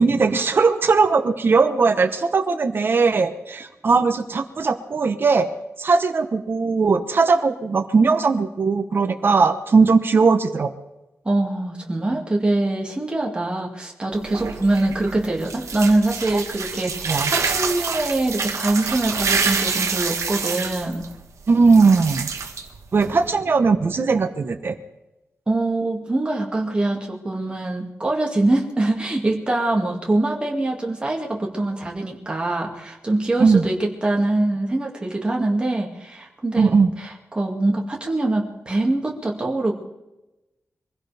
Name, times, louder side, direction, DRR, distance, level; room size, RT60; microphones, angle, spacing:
voice 1, 0.0-5.5 5.8-10.7 16.3-16.4 17.1-17.3 21.5-22.3 22.9-24.8 33.4-33.6 36.6-36.9, right 4 dB, 45° right, 9 dB, 1.0 m, -18 dB
voice 2, 11.2-21.0 25.5-39.8, right 2 dB, 20° right, -1 dB, 2.2 m, -23 dB
sound 1, 14.1-23.3, right 5 dB, 85° right, 1.5 m, -27 dB
24.0 x 16.0 x 3.5 m, 0.98 s
wide cardioid pair, 175°, 5 cm